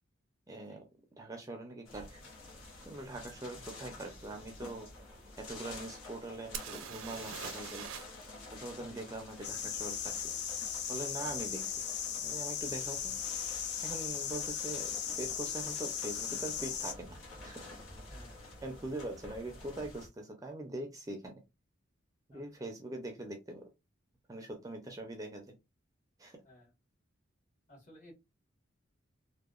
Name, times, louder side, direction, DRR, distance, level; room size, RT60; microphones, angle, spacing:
voice 1, 0.5-0.9 1.2-2.2 2.8-4.9 5.4-7.9 8.5-10.3 10.9-11.8 12.2-13.2 13.8-17.1 17.4-17.6 18.6-21.4 22.3-23.6 24.3-25.5 26.2-26.4, right 2 dB, 15° right, 3 dB, 0.4 m, -42 dB
sound 1, 1.8-20.1, left 2 dB, 75° left, 0.8 m, -50 dB
voice 2, 3.5-3.9 8.8-9.0 18.1-18.5 22.3-22.4 26.4-26.7 27.7-28.1, equal, 40° left, -2 dB, 1.3 m, -56 dB
sound 2, 6.5-8.3 8.5-8.6 12.0-12.1 12.8-13.0 13.2-13.8 15.8-15.9 16.2-16.3, right 7 dB, 80° right, 0.5 m, -44 dB
sound 3, 9.4-16.9, left 8 dB, 55° left, 0.4 m, -37 dB
2.7 x 2.0 x 2.3 m, 0.23 s
head